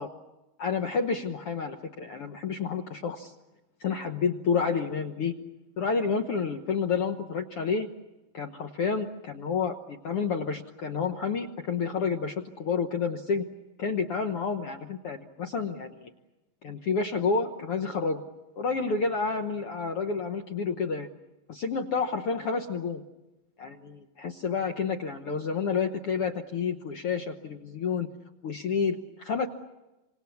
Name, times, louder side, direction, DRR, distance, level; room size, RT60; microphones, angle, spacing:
voice 1, 0.6-3.3 3.8-5.3 5.8-7.9 8.3-13.4 13.8-16.1 16.6-18.2 18.6-21.1 21.5-23.0 23.6-28.1 28.4-29.5, left 5 dB, 75° left, 5 dB, 1.3 m, -29 dB
28.5 x 26.0 x 7.1 m, 1.0 s
omnidirectional pair, 4.3 m